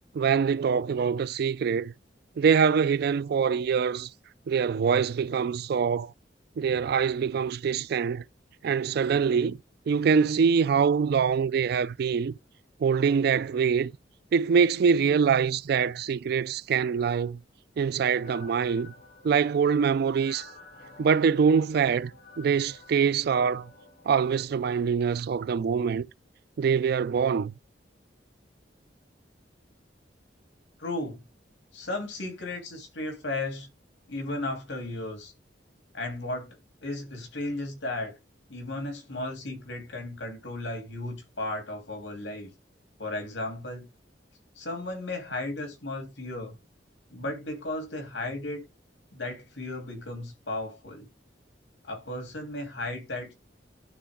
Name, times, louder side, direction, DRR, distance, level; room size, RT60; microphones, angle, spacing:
voice 1, 0.1-1.9 2.4-4.1 4.5-6.1 6.6-8.2 8.6-9.6 9.9-12.3 12.8-13.9 14.3-17.4 17.8-18.9 19.2-20.5 21.0-22.1 22.4-23.7 24.1-26.1 26.6-27.5, right 6 dB, 60° right, 0.3 m, -24 dB
sound 1, 18.2-24.4, left 2 dB, 60° left, 4.4 m, -51 dB
voice 2, 30.8-31.2 31.7-33.7 34.1-35.3 35.9-36.6 36.8-38.2 38.5-42.5 43.0-43.9 44.6-46.6 47.1-48.6 49.1-51.1 51.9-53.3, left 2 dB, 75° left, 3.1 m, -35 dB
11.5 x 3.9 x 3.5 m
head